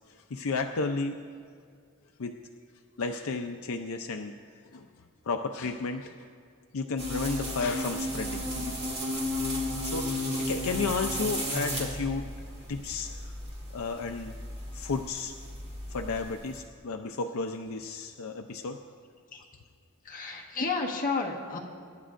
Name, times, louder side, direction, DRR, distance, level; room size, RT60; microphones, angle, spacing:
voice 1, 0.1-1.2 2.2-2.4 3.0-4.3 4.7-4.9 5.2-6.3 6.7-8.9 9.8-12.3 12.7-13.3 13.7-14.4 14.7-15.3 15.9-18.8, left 4 dB, 75° left, 5 dB, 0.5 m, -33 dB
sound 1, 7.0-16.6, equal, 30° right, 2.4 m, -34 dB
voice 2, 20.0-21.6, left 4 dB, 40° left, -2 dB, 1.5 m, -31 dB
26.5 x 11.0 x 2.5 m, 2.1 s
head